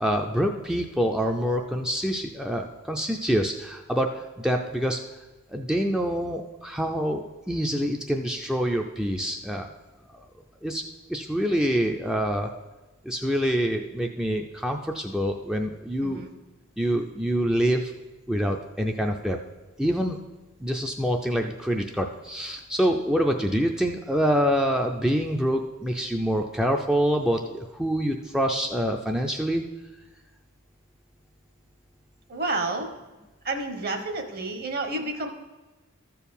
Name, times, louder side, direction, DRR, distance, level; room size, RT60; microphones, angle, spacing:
voice 1, 0.0-5.0 5.5-9.7 10.6-10.8 11.1-12.5 13.0-16.2 16.8-17.9 18.3-19.4 19.8-20.2 20.6-29.6, equal, 5° right, 2 dB, 0.5 m, -26 dB
voice 2, 32.3-32.9 33.4-35.3, right 2 dB, 45° right, 6 dB, 1.2 m, -30 dB
13.0 x 4.6 x 7.1 m, 1.2 s
head